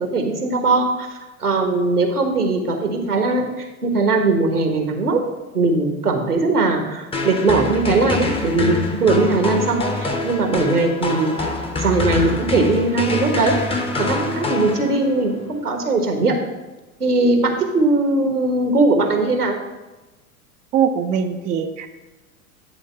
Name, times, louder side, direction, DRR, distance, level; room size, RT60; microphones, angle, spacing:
voice 1, 0.1-5.2 5.5-9.8 10.2-11.3 11.7-13.5 14.0-16.4 17.0-19.6, right 3 dB, 85° right, 4 dB, 1.3 m, -19 dB
sound 1, 7.1-15.3, left 3 dB, 10° left, 0.9 m, -25 dB
voice 2, 20.7-21.9, right 7 dB, 20° right, 6 dB, 0.4 m, -21 dB
10.5 x 3.6 x 5.5 m, 1.1 s
figure-of-eight pair, 85°, 44 cm